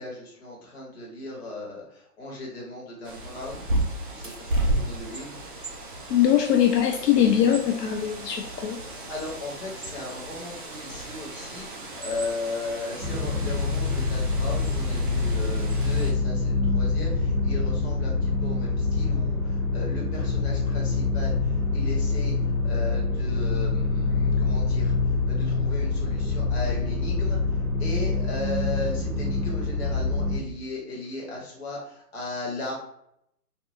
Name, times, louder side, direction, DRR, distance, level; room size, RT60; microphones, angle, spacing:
voice 1, 0.0-3.7 4.0-5.5 6.9-7.0 8.4-8.5 9.1-32.7, left 2 dB, 40° left, -3 dB, 1.3 m, -37 dB
Bird, 3.0-16.1, right 1 dB, 35° right, 0.5 m, -34 dB
voice 2, 6.1-8.8, left 10 dB, 80° left, 3 dB, 0.5 m, -21 dB
sound 1, 13.0-30.4, left 3 dB, 15° left, 1.0 m, -25 dB
3.2 x 2.5 x 2.7 m, 0.76 s
hypercardioid pair, 150°, 47 cm